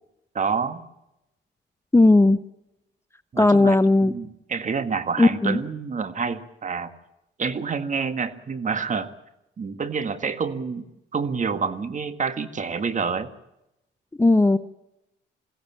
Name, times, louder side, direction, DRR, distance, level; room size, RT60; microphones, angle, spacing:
voice 1, 0.4-0.8 3.3-3.8 4.0-6.9 7.4-9.1 9.6-10.8 11.1-13.3, right 5 dB, 40° right, 11 dB, 1.7 m, -27 dB
voice 2, 1.9-2.4 3.4-4.1 5.2-5.6 14.2-14.6, left 2 dB, 15° left, 13 dB, 0.9 m, -16 dB
22.0 x 16.5 x 8.6 m, 0.89 s
cardioid pair, 90°, 20 cm